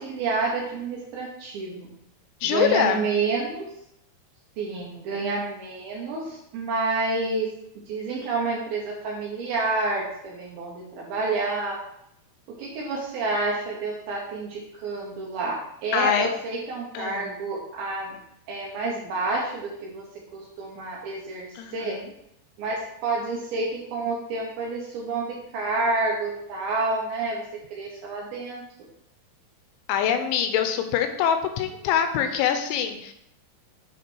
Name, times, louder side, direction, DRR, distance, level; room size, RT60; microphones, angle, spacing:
voice 1, 0.0-1.9 2.4-3.7 4.6-7.5 7.9-11.8 12.6-18.1 18.5-20.0 20.6-22.0 22.6-27.4 27.7-28.6, right 3 dB, 70° right, -2 dB, 2.4 m, -29 dB
voice 2, 2.4-3.0 15.9-16.3 16.9-17.3 21.6-22.1 29.9-33.1, left 8 dB, 85° left, 7 dB, 3.0 m, -24 dB
9.3 x 4.1 x 4.5 m, 0.78 s
omnidirectional pair, 5.5 m